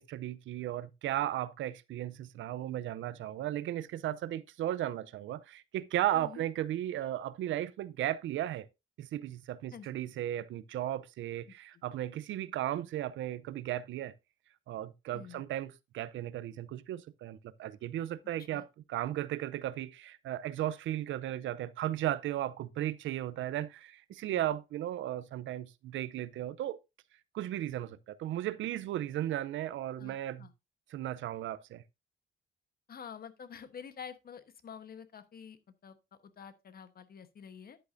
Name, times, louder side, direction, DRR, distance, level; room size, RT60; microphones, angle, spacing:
voice 1, 0.0-8.7 9.0-14.1 14.7-26.8 27.3-30.5 30.9-31.8, right 13 dB, 75° right, 0.6 m, -35 dB
voice 2, 6.1-6.4 9.7-9.9 11.7-11.8 15.1-15.4 18.5-18.7 24.3-24.4 30.0-30.5 32.9-36.0 36.2-37.8, left 7 dB, 50° left, 1.2 m, -48 dB
10.5 x 8.3 x 2.6 m
cardioid pair, 90°, 20 cm